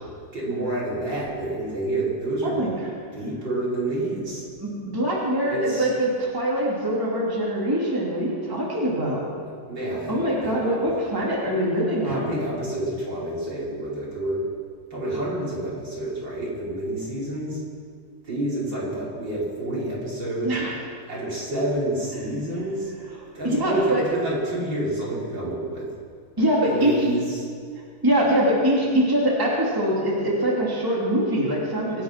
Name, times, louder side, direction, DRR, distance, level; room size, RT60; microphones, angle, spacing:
voice 1, 0.3-2.7 3.1-4.5 5.5-5.9 9.7-10.9 12.0-14.4 14.9-17.6 18.3-20.5 21.1-22.9 23.3-25.9 26.7-27.4, right 1 dB, 55° right, -7 dB, 5.3 m, -28 dB
voice 2, 2.4-2.9 4.6-9.3 10.1-12.3 20.4-20.8 23.1-23.2 23.4-24.0 26.4-27.1 28.0-32.0, right 1 dB, 10° right, -5 dB, 2.9 m, -23 dB
24.5 x 9.3 x 6.1 m, 2.1 s
omnidirectional pair, 2.3 m